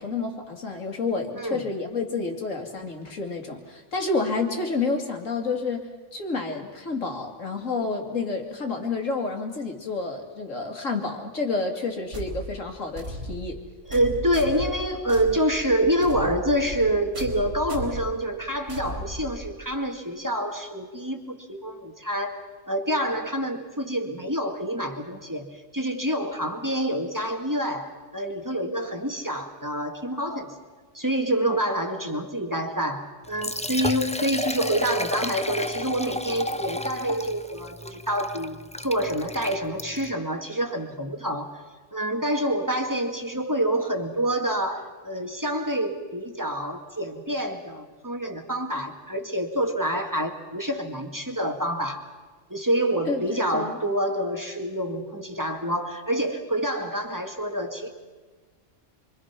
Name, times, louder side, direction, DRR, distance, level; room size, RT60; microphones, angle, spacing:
voice 1, 0.0-13.6 53.1-53.8, left 3 dB, 80° left, 3 dB, 2.9 m, -29 dB
sound 1, 12.1-19.8, right 1 dB, 70° right, 4.4 m, -36 dB
voice 2, 13.9-30.6 30.9-41.6 41.9-52.0 52.5-57.9, right 1 dB, 15° right, 3 dB, 2.0 m, -27 dB
Liquid, 33.2-40.1, left 1 dB, 10° left, 0.3 m, -32 dB
27.5 x 24.5 x 6.0 m, 1.4 s
omnidirectional pair, 1.3 m